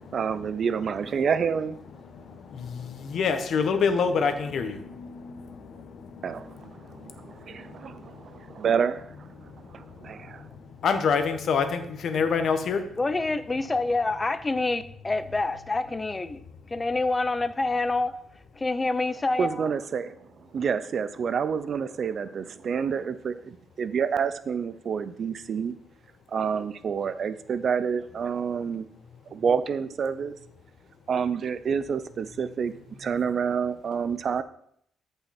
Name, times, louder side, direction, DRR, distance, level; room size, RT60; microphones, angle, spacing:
voice 1, 0.1-1.8 6.2-9.3 9.7-10.5 19.4-20.1 20.4-25.7 26.3-28.9 29.3-30.3 31.1-32.7 33.0-34.4, right 6 dB, 55° right, 13 dB, 0.5 m, -28 dB
voice 2, 3.1-4.7 10.8-12.8, left 5 dB, 65° left, 8 dB, 1.3 m, -24 dB
voice 3, 13.0-16.4 16.7-18.1 18.6-19.7, left 3 dB, 20° left, 13 dB, 0.7 m, -27 dB
14.0 x 5.6 x 4.4 m, 0.68 s
cardioid pair, 110°, 0 cm